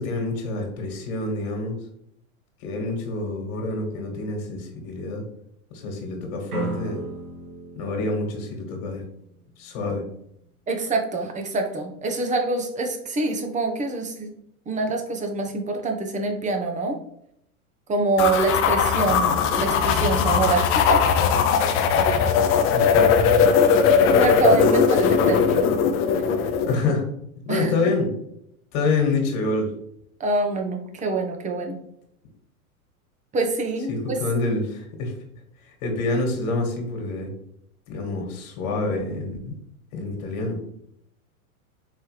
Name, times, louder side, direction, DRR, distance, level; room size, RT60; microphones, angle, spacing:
voice 1, 0.0-1.8 2.6-5.2 5.7-7.0 7.7-9.0 9.6-10.0 22.7-23.1 26.7-27.0 27.4-28.1 28.7-29.7 33.9-35.1 35.8-37.3 37.9-39.5 39.9-40.6, left 3 dB, 50° left, 1 dB, 1.7 m, -27 dB
sound 1, 6.5-9.4, right 4 dB, 85° right, 1.2 m, -35 dB
voice 2, 10.7-14.3 14.7-17.0 17.9-21.0 23.5-23.6 24.1-25.7 27.5-27.8 30.2-31.7 33.3-34.2, right 3 dB, 15° right, 4 dB, 0.7 m, -25 dB
sound 2, 18.2-26.7, left 6 dB, 30° left, 0.5 m, -19 dB
4.6 x 3.4 x 3.1 m, 0.73 s
hypercardioid pair, 105°, 43 cm